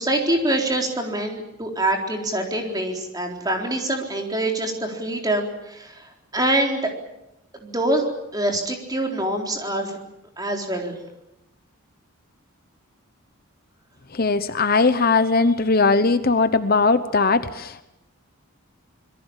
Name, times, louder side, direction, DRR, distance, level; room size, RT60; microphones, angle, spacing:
voice 1, 0.0-6.9 7.6-8.1 8.3-10.0 10.4-10.9, right 1 dB, 20° right, 2 dB, 4.0 m, -25 dB
voice 2, 14.1-17.8, left 3 dB, 45° left, 11 dB, 0.9 m, -19 dB
27.0 x 22.0 x 7.3 m, 0.88 s
head